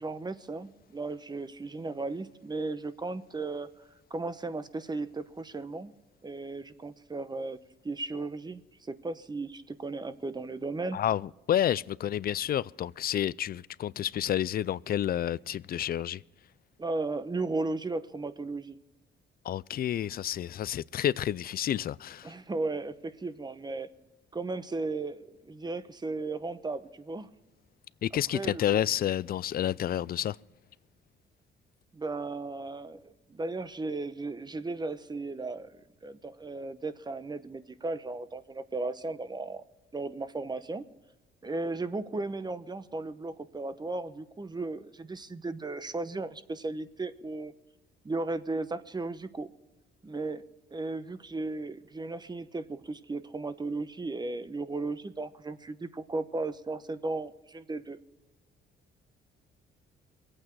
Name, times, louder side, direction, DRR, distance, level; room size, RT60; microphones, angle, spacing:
voice 1, 0.0-3.7 4.1-5.9 6.2-7.6 7.8-11.0 16.8-18.8 22.2-23.9 24.3-27.3 28.3-28.8 31.9-35.8 36.0-39.6 39.9-40.8 41.4-47.5 48.0-49.5 50.0-50.4 50.7-58.0, right 3 dB, 20° right, 0.9 m, -35 dB
voice 2, 10.9-16.2 19.4-22.3 28.0-30.4, left 11 dB, 50° left, 0.4 m, -30 dB
23.5 x 8.8 x 4.7 m
cardioid pair, 90°, 20 cm